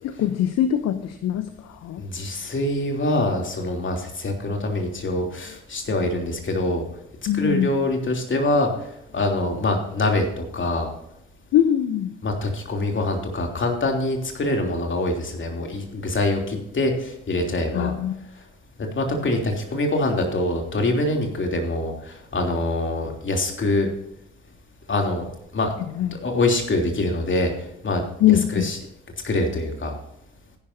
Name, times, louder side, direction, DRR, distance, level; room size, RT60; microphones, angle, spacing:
voice 1, 0.0-2.0 7.3-7.8 11.5-12.1 17.7-18.1 26.0-26.2 28.2-28.7, left 11 dB, 60° left, 11 dB, 0.8 m, -22 dB
voice 2, 2.0-6.8 7.3-8.9 9.1-10.9 12.2-17.9 18.8-23.9 24.9-25.2 25.5-25.7 26.1-27.5 27.8-28.8 29.2-29.9, left 2 dB, 40° left, 2 dB, 3.2 m, -24 dB
16.0 x 11.0 x 2.8 m, 0.78 s
hypercardioid pair, 45°, 30 cm